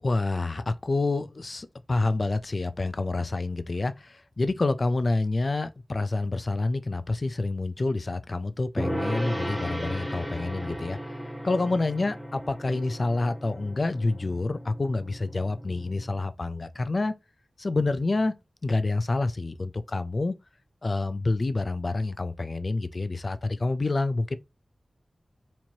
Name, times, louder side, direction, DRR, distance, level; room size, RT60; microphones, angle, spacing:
voice 1, 0.0-11.0 11.4-17.1 17.6-18.3 18.6-20.3 20.8-24.4, left 2 dB, 45° left, 0.3 m, -28 dB
Gong, 8.8-16.2, equal, ahead, 0.7 m, -36 dB
4.3 x 3.0 x 2.7 m
wide cardioid pair, 75°, 0 cm